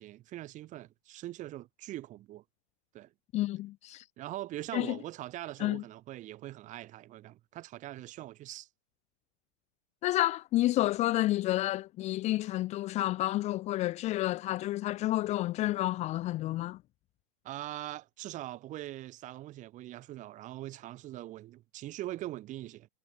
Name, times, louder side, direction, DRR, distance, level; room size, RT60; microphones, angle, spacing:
voice 1, 0.0-2.4 2.9-3.1 4.2-8.7 17.4-22.9, right 15 dB, 35° right, 7.0 m, -42 dB
voice 2, 3.3-4.0 4.7-5.0 5.6-5.8 10.0-16.8, left 16 dB, 30° left, 0.8 m, -30 dB
hypercardioid pair, 125°, 21 cm